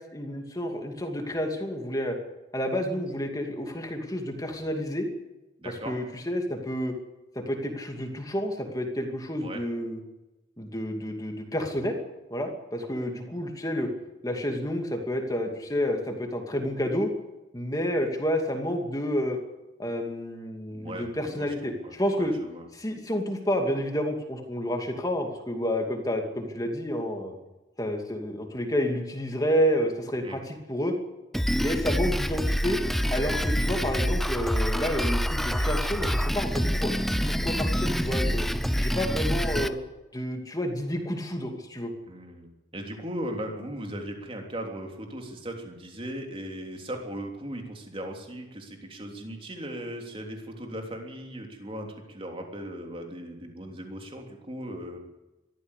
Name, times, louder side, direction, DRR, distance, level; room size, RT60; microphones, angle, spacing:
voice 1, 0.1-2.2 2.5-5.0 5.7-6.9 7.3-10.0 10.6-11.9 12.3-13.9 14.2-17.1 17.5-19.4 19.8-22.3 22.7-27.3 27.8-30.9 31.5-32.8 33.1-38.5 38.8-39.8 40.1-41.9, equal, 20° left, 3 dB, 2.5 m, -30 dB
voice 2, 5.6-6.0 9.4-9.6 20.7-22.6 30.2-30.4 42.1-55.0, right 1 dB, 30° right, 2 dB, 3.3 m, -38 dB
Drum kit, 31.3-39.7, equal, ahead, 0.7 m, -26 dB
22.5 x 14.5 x 8.4 m, 1.0 s
head